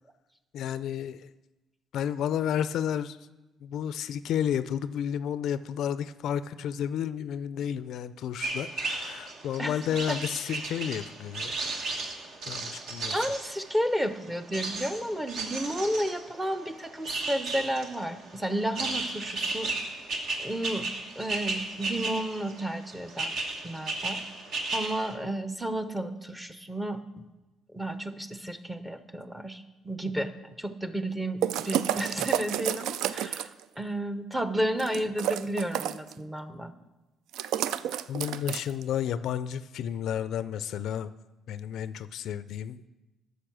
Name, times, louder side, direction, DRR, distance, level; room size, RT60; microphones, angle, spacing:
voice 1, 0.5-1.3 1.9-3.2 3.6-11.6 12.5-13.2 38.1-41.1 41.5-42.8, left 9 dB, 70° left, 15 dB, 0.3 m, -31 dB
sound 1, 8.4-25.1, right 3 dB, 60° right, 1.2 m, -35 dB
voice 2, 13.1-19.7 20.4-20.9 21.2-23.4 23.6-24.2 24.7-27.0 27.7-30.3 30.6-33.5 33.8-36.7, right 1 dB, 10° right, 11 dB, 0.7 m, -32 dB
sound 2, 31.4-33.6 34.8-36.1 37.3-38.8, right 10 dB, 85° right, 0.3 m, -30 dB
10.0 x 6.5 x 6.1 m, 1.1 s
cardioid pair, 105°, 0 cm